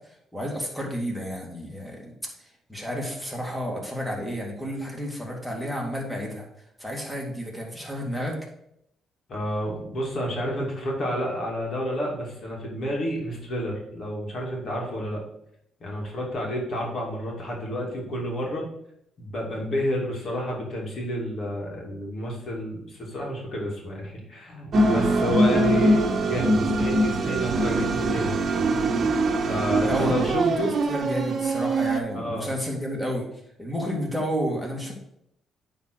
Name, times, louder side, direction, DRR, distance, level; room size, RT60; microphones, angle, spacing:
voice 1, 0.3-2.1 2.7-6.5 6.8-8.4 29.8-33.3 33.6-34.9, equal, ahead, -1 dB, 2.3 m, -31 dB
voice 2, 9.3-15.2 15.8-18.7 19.2-28.5 29.5-30.8 32.1-32.5, equal, 55° left, -2 dB, 2.5 m, -30 dB
sound 1, 24.7-32.0, right 2 dB, 50° right, 1.0 m, -23 dB
9.2 x 4.0 x 4.6 m, 0.78 s
cardioid pair, 90°, 0 cm